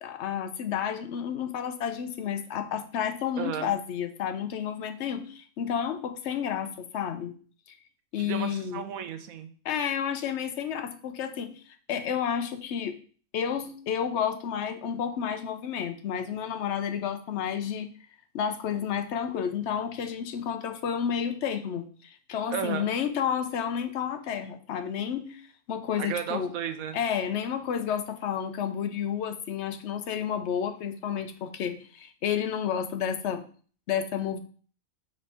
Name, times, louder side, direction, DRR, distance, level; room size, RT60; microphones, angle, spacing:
voice 1, 0.0-7.3 8.1-8.8 9.6-11.5 11.9-13.0 13.3-17.9 18.3-25.4 25.7-26.5 26.9-33.4 33.9-34.4, left 8 dB, 65° left, 7 dB, 0.9 m, -31 dB
voice 2, 3.4-3.7 8.2-9.5 22.5-22.9 26.0-27.0, right 8 dB, 85° right, 9 dB, 1.1 m, -33 dB
5.2 x 3.3 x 5.4 m, 0.43 s
omnidirectional pair, 1.4 m